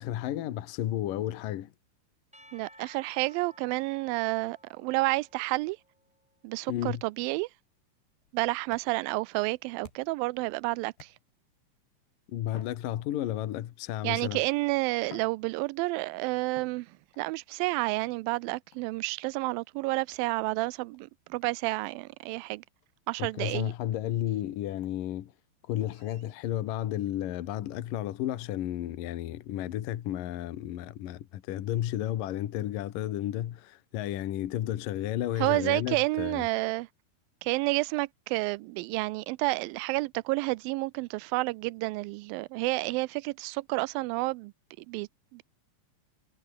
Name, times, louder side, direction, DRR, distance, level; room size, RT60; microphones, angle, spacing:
voice 1, 0.0-1.7 6.7-7.0 12.3-14.4 23.2-25.3 25.7-36.5, left 12 dB, 65° left, 2.8 m, -32 dB
Percussion / Church bell, 2.3-6.5, equal, ahead, 3.4 m, -57 dB
voice 2, 2.5-5.8 6.4-7.5 8.3-11.1 14.0-22.6 23.1-23.7 35.3-36.9 37.4-44.5 44.8-45.4, right 23 dB, 85° right, 2.1 m, -30 dB
sound 1, 8.1-10.3 11.0-11.6 12.4-13.6 14.4-14.5 15.0-16.1 16.5-17.3 18.7-19.0 20.1-20.3 20.9-21.0 21.4-21.5 21.8-22.0 22.3-22.4 22.8-22.9 23.3-23.4 23.9-24.0 24.8-25.0, left 7 dB, 90° left, 5.9 m, -55 dB
omnidirectional pair, 4.6 m